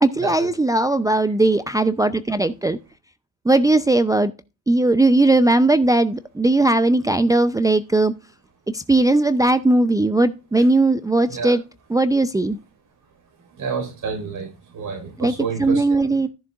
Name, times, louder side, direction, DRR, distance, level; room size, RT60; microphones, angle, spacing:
voice 1, 0.0-2.8 3.4-4.3 4.7-8.1 8.7-11.6 11.9-12.6 15.2-15.3 15.6-16.3, right 2 dB, 10° right, 10 dB, 0.6 m, -18 dB
voice 2, 13.6-15.8, right 5 dB, 50° right, 1 dB, 4.8 m, -29 dB
14.0 x 7.0 x 2.5 m, 0.29 s
hypercardioid pair, 70°, 41 cm